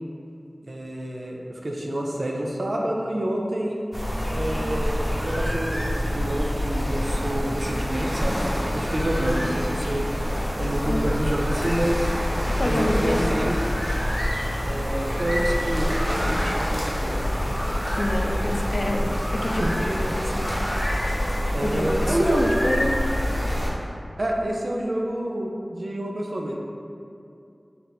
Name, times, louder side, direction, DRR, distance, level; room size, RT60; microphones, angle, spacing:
voice 1, 0.6-3.8 4.3-12.2 12.6-13.6 14.7-15.9 16.3-17.2 19.6-19.7 21.5-22.5 24.2-26.5, right 1 dB, 70° right, -1 dB, 0.5 m, -28 dB
sound 1, 3.9-23.7, equal, 15° left, 0.9 m, -26 dB
voice 2, 12.6-13.3 18.0-20.5 21.6-23.0, left 1 dB, 70° left, 1 dB, 0.4 m, -28 dB
3.4 x 2.8 x 3.9 m, 2.5 s
wide cardioid pair, 55°, 0 cm